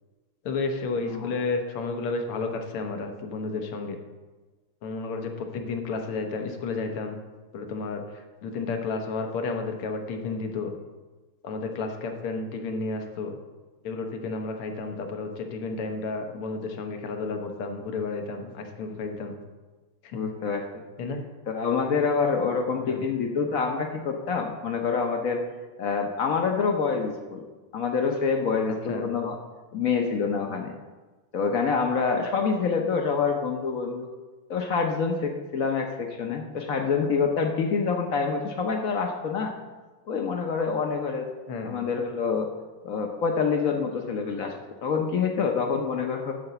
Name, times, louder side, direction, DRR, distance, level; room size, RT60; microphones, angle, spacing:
voice 1, 0.5-4.0 4.8-7.2 7.5-8.0 8.4-10.8 11.4-13.4 13.8-19.4 20.1-20.2 21.0-21.2 22.8-23.0 28.9-29.1 41.5-41.9, left 3 dB, 90° left, 4 dB, 1.9 m, -32 dB
voice 2, 20.1-20.8 21.5-25.4 25.8-27.4 27.7-29.4 29.7-30.7 31.3-34.1 34.5-39.5 40.1-41.3 41.6-42.5 42.8-44.5 44.8-46.3, left 5 dB, 65° left, 3 dB, 0.8 m, -26 dB
10.5 x 4.0 x 6.7 m, 1.3 s
omnidirectional pair, 2.4 m